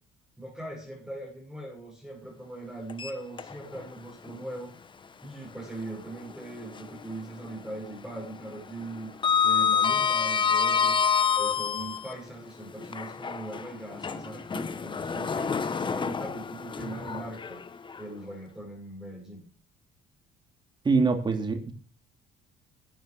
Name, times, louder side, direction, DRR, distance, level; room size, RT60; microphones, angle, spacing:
voice 1, 0.4-4.8 5.2-9.1 9.4-11.0 11.4-17.6 18.0-19.4, right 2 dB, 5° right, -4 dB, 6.4 m, -40 dB
Sliding door, 2.9-3.9 4.3-4.4 6.1-7.1 7.4-12.1 12.8-18.0, left 6 dB, 30° left, 1.0 m, -28 dB
voice 2, 20.8-21.7, right 4 dB, 25° right, 5 dB, 3.0 m, -24 dB
12.5 x 9.2 x 6.9 m, 0.41 s
cardioid pair, 110°, 17 cm